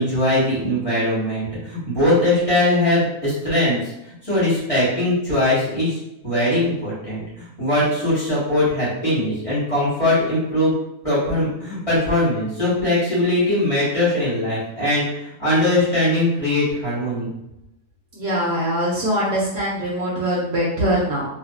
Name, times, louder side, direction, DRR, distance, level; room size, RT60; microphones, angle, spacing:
voice 1, 0.0-3.8 4.2-6.0 6.2-7.2 7.6-10.7 11.0-15.0 15.4-17.3, left 1 dB, 25° left, -10 dB, 1.3 m, -20 dB
voice 2, 18.1-21.3, equal, 65° right, -6 dB, 1.0 m, -22 dB
2.6 x 2.5 x 2.3 m, 0.87 s
omnidirectional pair, 1.6 m